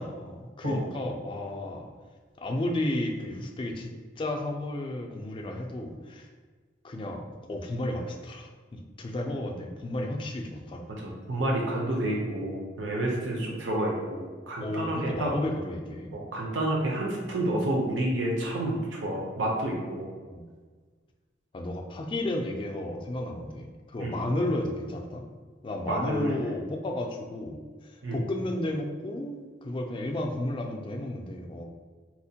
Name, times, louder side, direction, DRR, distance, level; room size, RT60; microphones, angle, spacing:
voice 1, 0.0-1.9 2.4-6.3 6.8-10.9 14.6-16.1 20.3-20.5 21.5-25.2 25.6-31.6, left 1 dB, 25° left, 2 dB, 0.3 m, -33 dB
voice 2, 11.0-15.3 16.1-20.1 24.0-24.2 25.9-26.4 28.0-28.2, right 1 dB, 75° right, -2 dB, 0.6 m, -29 dB
4.2 x 2.1 x 2.7 m, 1.5 s
head